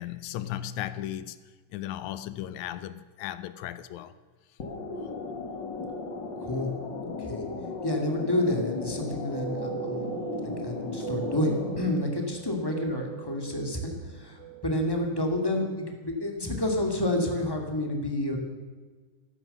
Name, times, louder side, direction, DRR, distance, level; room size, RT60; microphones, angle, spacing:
voice 1, 0.0-1.4 1.7-4.1, left 12 dB, 80° left, 1.7 m, -36 dB
sound 1, 4.6-11.8, left 3 dB, 45° left, 1.8 m, -35 dB
voice 2, 6.4-6.7 7.2-7.4 7.8-10.2 10.6-18.4, left 1 dB, 10° left, 1.8 m, -29 dB
sound 2, 9.3-15.4, right 14 dB, 75° right, 2.2 m, -40 dB
15.0 x 13.0 x 6.7 m
omnidirectional pair, 3.9 m